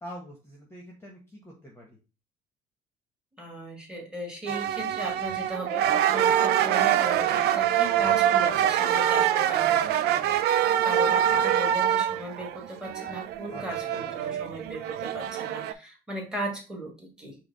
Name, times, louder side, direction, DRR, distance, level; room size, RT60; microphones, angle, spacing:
voice 1, 0.0-2.0 13.5-14.4, equal, 15° left, 0 dB, 1.2 m, -45 dB
voice 2, 3.4-17.4, equal, 5° right, 1 dB, 1.9 m, -37 dB
sound 1, 4.5-15.7, right 10 dB, 75° right, 0.4 m, -25 dB
4.9 x 2.3 x 4.7 m, 0.31 s
cardioid pair, 110°, 17 cm